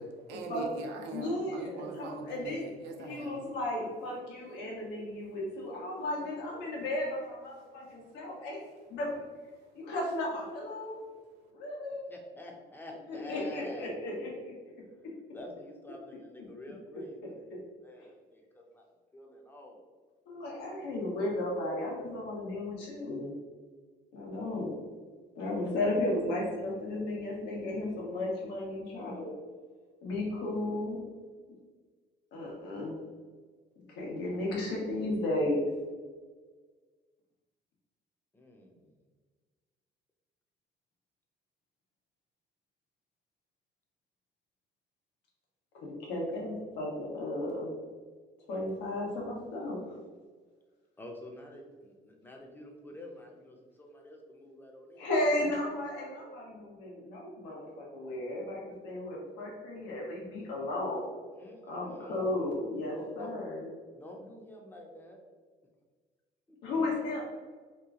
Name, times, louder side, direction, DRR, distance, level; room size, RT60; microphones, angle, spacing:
voice 1, 0.0-3.5 7.9-8.0, right 3 dB, 90° right, 3 dB, 0.6 m, -42 dB
voice 2, 1.1-2.7 3.0-8.6 8.9-9.1 9.7-11.1 11.5-12.1 13.1-14.5 18.0-18.1 20.3-23.3 24.1-24.7 25.3-29.3 30.0-31.0 32.3-33.0 34.0-35.7 45.8-47.7 48.5-50.0 55.0-61.1 61.7-63.7 66.6-67.2, left 1 dB, 90° left, -3 dB, 1.1 m, -34 dB
voice 3, 12.1-13.9 15.3-18.9 19.1-19.8 24.4-24.6 38.3-38.9 51.0-55.1 60.3-60.5 61.3-62.4 62.8-63.3 63.9-65.2 66.5-66.6, left 1 dB, 10° left, 1 dB, 0.6 m, -48 dB
2.9 x 2.4 x 3.6 m, 1.5 s
cardioid pair, 110°, 17 cm